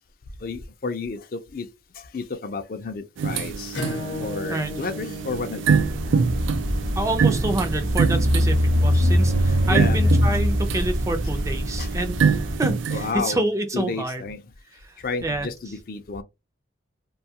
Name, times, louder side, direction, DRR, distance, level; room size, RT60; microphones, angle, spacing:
voice 1, 0.4-1.7 1.9-3.8 4.2-5.8 9.6-10.0 10.3-10.4 11.8-11.9 12.9-13.4 13.7-14.4 15.0-16.2, left 4 dB, 50° left, 0.4 m, -31 dB
sound 1, 3.2-13.1, right 6 dB, 90° right, 0.3 m, -26 dB
Acoustic guitar / Strum, 3.7-9.0, left 2 dB, 75° left, 0.8 m, -37 dB
sound 2, 5.7-12.6, equal, 45° right, 0.8 m, -23 dB
voice 2, 7.0-14.3 14.8-15.5, right 1 dB, 15° right, 0.4 m, -28 dB
2.6 x 2.3 x 2.8 m
head